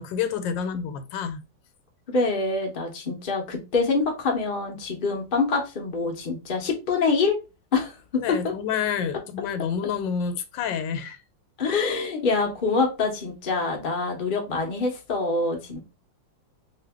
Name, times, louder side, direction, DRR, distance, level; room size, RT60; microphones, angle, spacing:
voice 1, 0.0-1.4 8.2-11.2, left 7 dB, 85° left, 1.3 m, -28 dB
voice 2, 2.1-7.4 7.7-8.5 11.6-15.8, left 4 dB, 55° left, 0.5 m, -25 dB
2.8 x 2.5 x 3.4 m
omnidirectional pair, 2.0 m